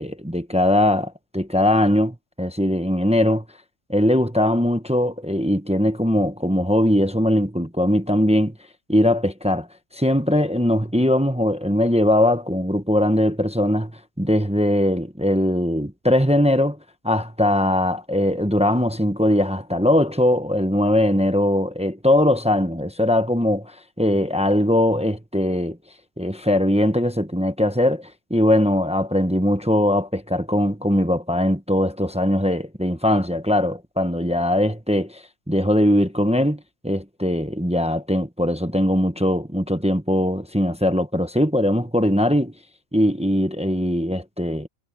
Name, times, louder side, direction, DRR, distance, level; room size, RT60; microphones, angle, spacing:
voice 1, 0.0-3.4 3.9-8.5 8.9-9.7 9.9-13.9 14.2-16.8 17.0-23.7 24.0-25.8 26.2-42.5 42.9-44.7, left 1 dB, 5° right, 0.8 m, -20 dB
omnidirectional pair, 1.4 m